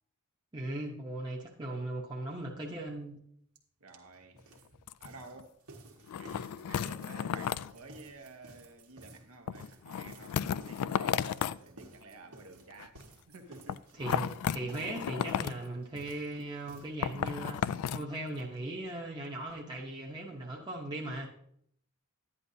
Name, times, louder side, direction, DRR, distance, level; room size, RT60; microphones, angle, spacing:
voice 1, 0.5-3.2 13.9-21.3, right 2 dB, 20° right, 0.9 m, -38 dB
sound 1, 3.6-3.7 3.9-18.3 18.5-18.6 18.9-19.0 19.2-19.3, right 2 dB, 90° right, 1.4 m, -54 dB
voice 2, 3.8-4.5 5.0-5.6 6.1-13.9, right 3 dB, 75° right, 1.1 m, -52 dB
sound 2, 4.4-4.6 4.9-5.1 5.4-5.5 6.1-7.7 9.5-11.6 12.7-13.0 13.7-15.6 17.0-18.1 18.4-18.5, left 8 dB, 85° left, 0.3 m, -34 dB
11.0 x 9.8 x 2.7 m
head